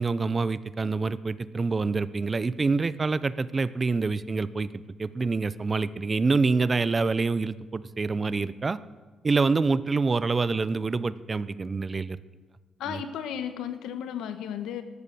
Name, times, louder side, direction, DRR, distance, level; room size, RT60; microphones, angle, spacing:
voice 1, 0.0-4.7 5.0-8.8 9.2-12.2 12.9-13.0, right 4 dB, 30° right, 17 dB, 0.6 m, -26 dB
voice 2, 12.8-14.8, left 9 dB, 85° left, 10 dB, 1.2 m, -34 dB
13.5 x 12.5 x 7.0 m, 1.3 s
cardioid pair, 90°, 0 cm